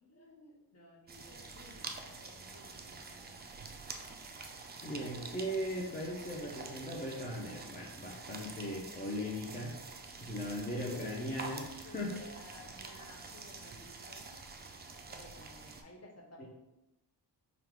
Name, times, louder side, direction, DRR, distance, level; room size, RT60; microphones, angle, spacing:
voice 1, 0.0-3.6 4.8-5.3 10.8-11.2 11.8-14.3 15.1-16.5, left 2 dB, 35° left, -2 dB, 0.9 m, -55 dB
sound 1, 1.1-15.8, right 4 dB, 25° right, 0.3 m, -47 dB
voice 2, 4.8-9.8 10.2-12.2 16.4-16.5, equal, 20° left, -3 dB, 0.6 m, -38 dB
3.7 x 2.5 x 4.5 m, 0.94 s
wide cardioid pair, 130°, 43 cm